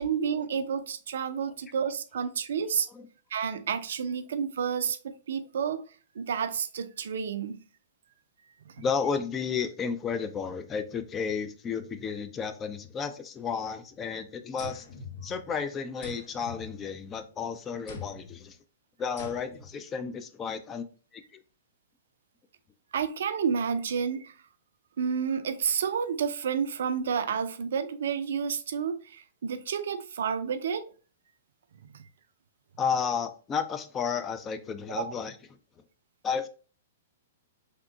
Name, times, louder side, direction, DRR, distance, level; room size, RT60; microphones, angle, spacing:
voice 1, 0.0-2.9 3.3-5.8 6.2-7.6 8.8-8.9 22.9-24.3 25.0-30.8 34.9-35.1, right 7 dB, 65° right, 0.3 m, -30 dB
voice 2, 8.8-14.9 15.2-18.6 19.0-20.8 21.1-21.2 32.8-35.3 36.2-36.5, left 6 dB, 20° left, 0.3 m, -32 dB
sound 1, 14.6-15.6 16.0-17.3 17.9-18.4 19.2-19.8, left 4 dB, 50° left, 0.7 m, -44 dB
3.4 x 2.8 x 2.3 m
figure-of-eight pair, 110°, 0 cm